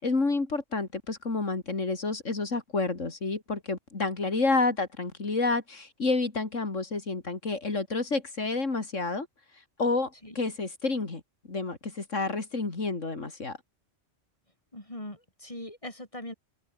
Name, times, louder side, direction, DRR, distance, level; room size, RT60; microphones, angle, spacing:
voice 1, 0.0-9.3 9.8-11.2 11.5-13.6, left 3 dB, 85° left, 3.5 m, -29 dB
voice 2, 14.7-16.3, left 1 dB, 25° left, 6.5 m, -41 dB
omnidirectional pair, 1.3 m